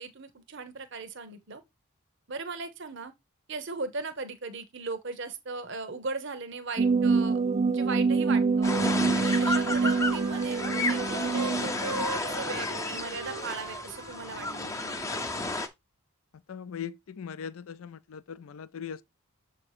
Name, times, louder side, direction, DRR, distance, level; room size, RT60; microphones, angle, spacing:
voice 1, 0.0-1.6 2.3-3.1 3.5-8.7 9.1-14.8, right 4 dB, 55° right, 0.9 m, -38 dB
sound 1, 6.8-12.0, right 4 dB, 30° right, 0.3 m, -26 dB
sound 2, 8.6-15.7, left 2 dB, 15° left, 0.6 m, -33 dB
Wind instrument woodwind instrument, 8.8-11.5 11.8-15.4, right 4 dB, 90° right, 0.8 m, -40 dB
voice 2, 16.5-19.0, left 7 dB, 70° left, 0.4 m, -40 dB
7.1 x 2.8 x 4.8 m
head